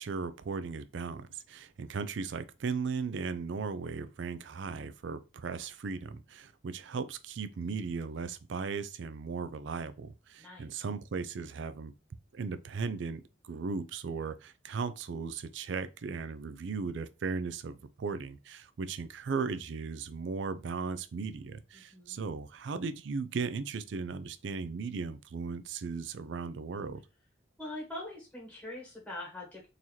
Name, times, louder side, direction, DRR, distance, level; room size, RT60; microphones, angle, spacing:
voice 1, 0.0-11.9 12.3-27.0, right 5 dB, 65° right, 0.4 m, -37 dB
voice 2, 10.4-10.8 21.7-22.2 27.6-29.7, left 1 dB, 5° left, 1.1 m, -43 dB
3.9 x 2.7 x 3.0 m
head